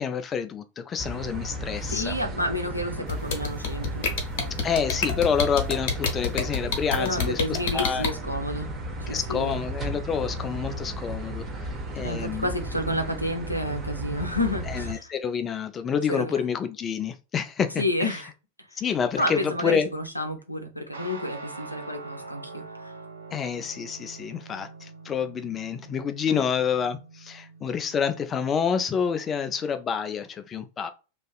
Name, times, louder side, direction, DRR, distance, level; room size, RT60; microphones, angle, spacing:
voice 1, 0.0-2.2 4.6-8.0 9.1-12.5 14.7-18.2 18.7-19.9 23.3-30.9, left 7 dB, 25° left, 0.3 m, -28 dB
sound 1, 1.0-14.9, right 1 dB, 20° right, 0.6 m, -34 dB
voice 2, 1.9-4.1 6.9-8.7 9.0-9.6 12.0-15.1 16.1-16.4 17.8-18.3 19.2-22.9 26.3-26.4, left 1 dB, 90° left, 0.5 m, -30 dB
sound 2, 3.1-8.1, left 6 dB, 50° left, 0.7 m, -26 dB
Guitar, 20.9-29.7, right 3 dB, 70° right, 0.7 m, -44 dB
2.4 x 2.4 x 2.3 m
figure-of-eight pair, 90°, 0 cm